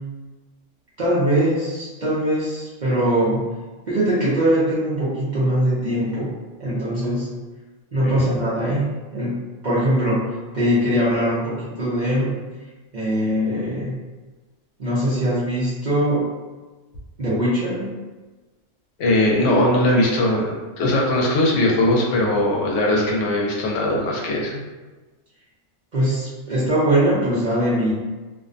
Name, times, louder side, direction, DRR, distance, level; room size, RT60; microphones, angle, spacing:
voice 1, 1.0-3.5 3.9-6.3 6.6-7.3 7.9-12.3 12.9-13.9 14.8-16.3 17.2-18.0 25.9-27.9, right 1 dB, 50° right, -8 dB, 0.6 m, -21 dB
voice 2, 19.0-24.6, left 1 dB, 80° left, -2 dB, 0.9 m, -20 dB
2.5 x 2.1 x 2.5 m, 1.2 s
omnidirectional pair, 1.3 m